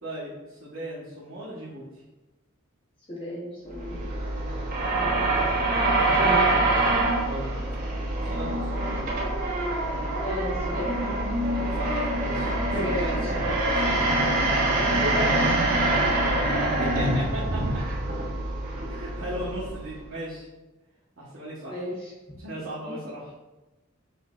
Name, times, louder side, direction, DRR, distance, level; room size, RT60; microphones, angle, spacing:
voice 1, 0.0-2.0 7.2-7.5 8.2-9.0 11.4-14.0 16.8-17.8 18.8-20.5 21.2-21.8 22.4-23.3, right 1 dB, 65° right, -9 dB, 1.1 m, -37 dB
voice 2, 3.1-4.0 4.9-5.7 6.1-6.5 10.2-10.9 12.7-13.3 14.8-15.5 21.7-22.1, left 1 dB, 25° left, -7 dB, 1.0 m, -34 dB
sound 1, 3.7-20.1, right 2 dB, 45° right, 0.9 m, -25 dB
6.1 x 3.0 x 2.4 m, 1.1 s
head